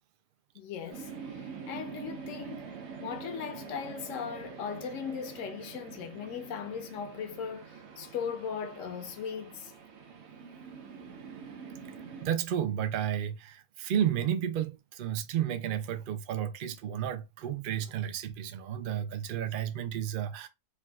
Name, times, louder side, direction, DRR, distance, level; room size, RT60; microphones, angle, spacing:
voice 1, 0.5-2.7 3.0-9.7, left 7 dB, 75° left, 0.9 m, -38 dB
sound 1, 0.9-12.3, right 6 dB, 60° right, 0.9 m, -45 dB
voice 2, 12.2-20.5, right 10 dB, 80° right, 0.4 m, -32 dB
3.4 x 2.3 x 2.2 m
omnidirectional pair, 1.4 m